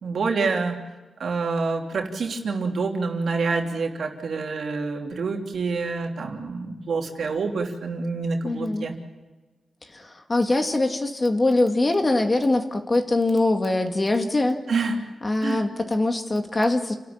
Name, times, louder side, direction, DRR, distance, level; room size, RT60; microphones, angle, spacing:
voice 1, 0.0-0.8 1.2-8.9 14.7-15.0 15.4-15.6, right 4 dB, 65° right, 2 dB, 3.2 m, -27 dB
voice 2, 8.4-8.9 9.9-14.6 15.2-16.9, left 2 dB, 25° left, 5 dB, 2.0 m, -23 dB
30.0 x 13.0 x 8.8 m, 1.2 s
wide cardioid pair, 110°, 0 cm